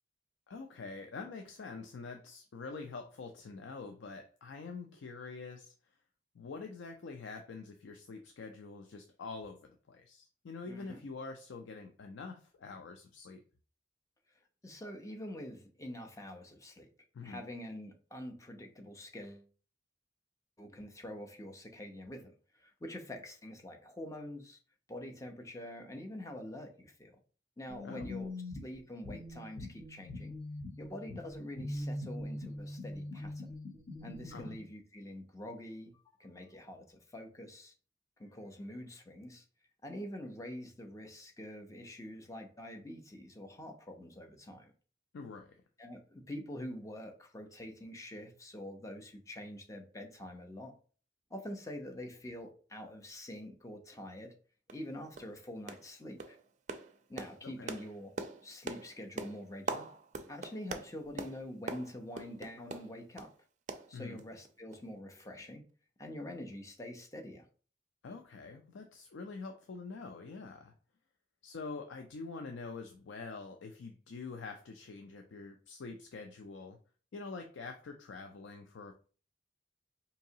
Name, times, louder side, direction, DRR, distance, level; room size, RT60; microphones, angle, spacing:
voice 1, 0.5-5.7 6.3-13.4 17.1-17.4 27.8-28.1 34.3-34.5 45.1-45.5 57.4-57.7 63.9-64.2 68.0-70.7 71.4-76.8 77.1-78.9, left 4 dB, 85° left, 0.4 m, -45 dB
voice 2, 10.6-11.0 14.6-16.9 17.2-19.5 20.6-24.6 24.9-27.2 27.6-28.3 28.6-30.3 30.8-33.6 34.0-37.7 38.2-39.4 39.8-44.7 45.8-50.7 51.3-54.3 54.7-56.4 57.1-58.1 58.4-59.9 60.3-63.3 63.9-65.6 66.0-67.5, left 1 dB, 15° left, 0.6 m, -46 dB
sound 1, 27.7-34.5, left 1 dB, 35° left, 1.3 m, -42 dB
sound 2, 54.2-54.3 54.7-54.9 55.1-55.4 55.7-55.9 56.2-63.3 63.7-64.5 64.7-64.8 65.2-65.3, right 3 dB, 40° right, 0.4 m, -43 dB
4.6 x 2.8 x 2.7 m
head